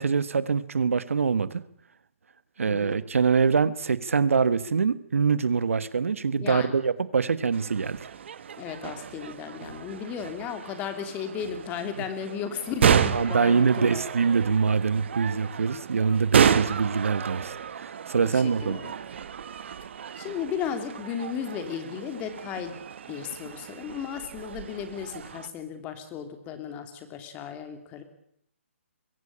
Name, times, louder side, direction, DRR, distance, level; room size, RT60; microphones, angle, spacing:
voice 1, 0.0-1.6 2.6-8.1 13.1-18.8, right 5 dB, 80° right, 16 dB, 1.3 m, -24 dB
voice 2, 2.7-3.0 6.4-6.7 8.6-14.0 18.2-18.9 20.2-22.8 23.1-28.0, left 8 dB, 20° left, 9 dB, 2.9 m, -35 dB
sound 1, 7.5-25.5, right 8 dB, 55° right, 1.6 m, -31 dB
22.5 x 16.0 x 9.9 m, 0.71 s
hypercardioid pair, 150°, 7 cm